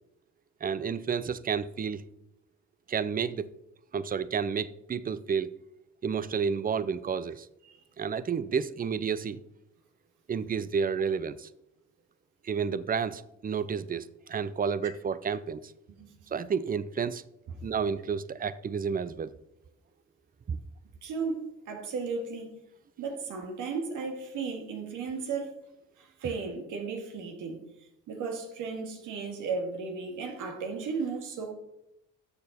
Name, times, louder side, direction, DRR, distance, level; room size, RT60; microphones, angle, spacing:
voice 1, 0.6-2.0 2.9-3.5 3.9-5.5 6.0-7.5 8.0-9.4 10.3-11.5 12.4-15.6 16.3-17.2 17.6-19.3 20.5-20.6, right 6 dB, 30° right, 0.6 m, -30 dB
voice 2, 16.0-16.3 21.0-22.5 23.0-25.5 26.0-27.6 28.1-31.5, right 4 dB, 85° right, 2.1 m, -35 dB
13.5 x 6.8 x 4.2 m
cardioid pair, 90°, 30 cm